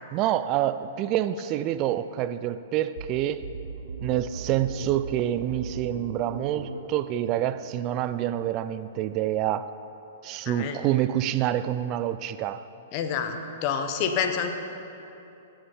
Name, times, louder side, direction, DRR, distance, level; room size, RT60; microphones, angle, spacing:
voice 1, 0.1-3.5 4.0-9.7 10.2-12.6, right 12 dB, 40° right, 13 dB, 0.4 m, -27 dB
sound 1, 3.0-8.6, right 5 dB, 70° right, 0.7 m, -39 dB
voice 2, 10.5-10.8 12.9-14.5, left 7 dB, 45° left, 6 dB, 1.1 m, -28 dB
16.0 x 7.1 x 5.5 m, 2.8 s
hypercardioid pair, 110°, 0 cm